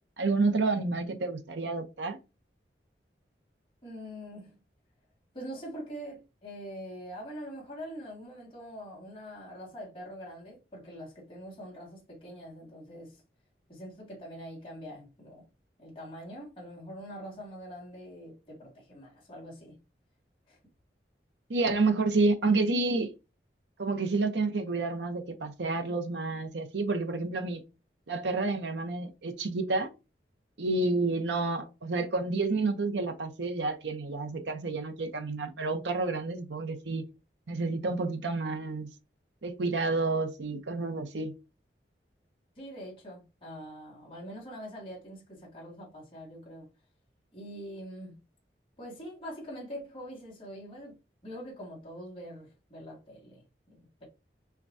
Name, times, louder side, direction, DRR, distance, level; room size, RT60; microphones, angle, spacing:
voice 1, 0.2-2.2 21.5-23.1 23.8-27.6 28.1-29.9 30.6-37.0 37.5-38.9 39.4-41.3, right 3 dB, 85° right, 0.7 m, -29 dB
voice 2, 3.8-4.6 5.3-13.2 13.7-15.4 15.8-19.8 20.5-20.6 30.8-31.0 42.6-46.7 47.3-48.2 48.8-50.9 51.2-54.0, equal, 30° left, 2.1 m, -44 dB
5.8 x 2.2 x 2.6 m
head